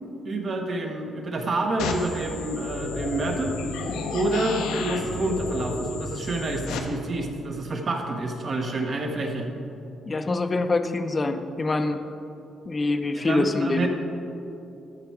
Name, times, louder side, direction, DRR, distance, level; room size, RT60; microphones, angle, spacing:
voice 1, 0.2-3.6 4.1-9.5 13.1-13.9, right 2 dB, 45° right, 3 dB, 1.1 m, -28 dB
sound 1, 1.8-6.8, left 4 dB, 90° left, 0.8 m, -32 dB
voice 2, 10.1-12.0 12.7-13.9, left 2 dB, 30° left, 8 dB, 0.6 m, -25 dB
12.5 x 4.6 x 4.7 m, 2.8 s
cardioid pair, 90°, 0 cm